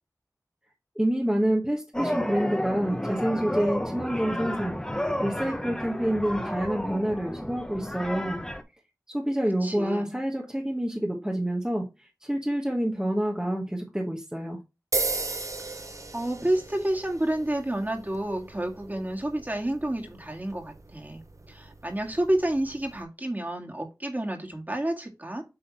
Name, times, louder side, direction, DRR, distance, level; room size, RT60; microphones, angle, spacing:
voice 1, 0.9-4.8 5.2-8.4 9.1-11.9 12.2-14.6, right 1 dB, 10° right, 1.3 m, -27 dB
sound 1, 1.9-8.6, equal, 10° left, 1.2 m, -31 dB
voice 2, 9.6-10.2 15.6-15.8 16.1-25.4, right 1 dB, 25° right, 2.0 m, -30 dB
sound 2, 14.9-23.0, right 3 dB, 50° right, 0.7 m, -37 dB
8.1 x 3.7 x 4.2 m
wide cardioid pair, 45°, 7 cm